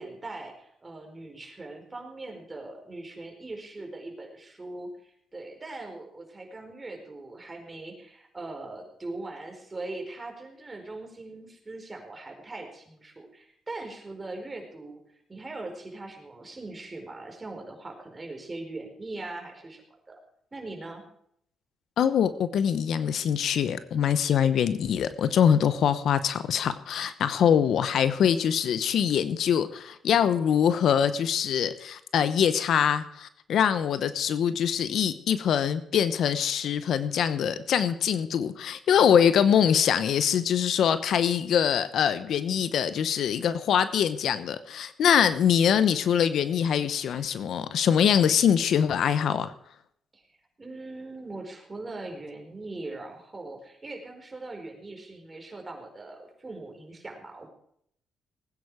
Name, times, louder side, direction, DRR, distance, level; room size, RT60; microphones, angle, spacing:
voice 1, 0.0-15.0 15.3-20.1 20.5-21.0 50.1-50.3 50.6-57.5, right 2 dB, 25° right, 3 dB, 4.7 m, -40 dB
voice 2, 22.0-49.5, left 8 dB, 70° left, 13 dB, 0.9 m, -24 dB
19.0 x 9.6 x 5.0 m, 0.70 s
cardioid pair, 70°, 0 cm